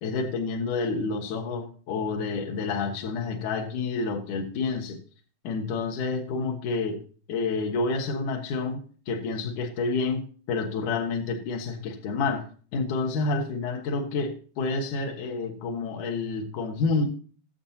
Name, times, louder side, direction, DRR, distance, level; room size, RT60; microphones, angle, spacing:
voice 1, 0.0-5.0 5.4-7.0 7.3-12.5 12.7-17.1, left 4 dB, 70° left, 2 dB, 1.9 m, -29 dB
20.5 x 7.5 x 2.8 m, 0.43 s
omnidirectional pair, 5.5 m